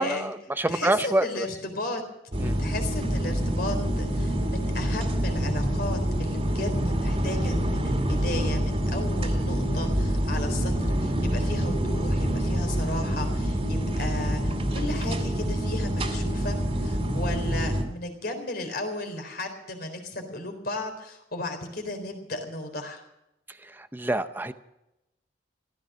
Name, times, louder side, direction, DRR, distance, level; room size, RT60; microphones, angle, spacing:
voice 1, 0.0-1.5 2.4-2.6 23.6-24.5, right 2 dB, 10° right, 10 dB, 0.6 m, -27 dB
voice 2, 0.7-2.0 2.6-23.0, left 2 dB, 55° left, 4 dB, 4.0 m, -35 dB
sound 1, 2.3-17.8, equal, 30° right, 2.5 m, -26 dB
15.5 x 14.5 x 6.2 m, 0.89 s
head